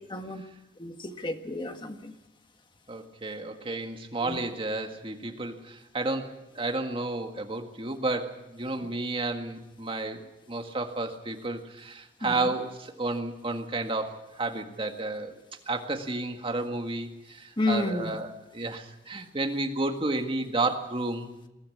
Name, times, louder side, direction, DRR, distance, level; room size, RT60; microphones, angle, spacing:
voice 1, 0.1-0.4 0.8-2.1 4.2-4.4 12.2-12.5 17.6-18.2, left 2 dB, 25° left, 6 dB, 1.6 m, -31 dB
voice 2, 2.9-15.4 15.7-21.5, right 2 dB, 30° right, 4 dB, 1.9 m, -32 dB
22.0 x 14.5 x 8.5 m, 0.95 s
head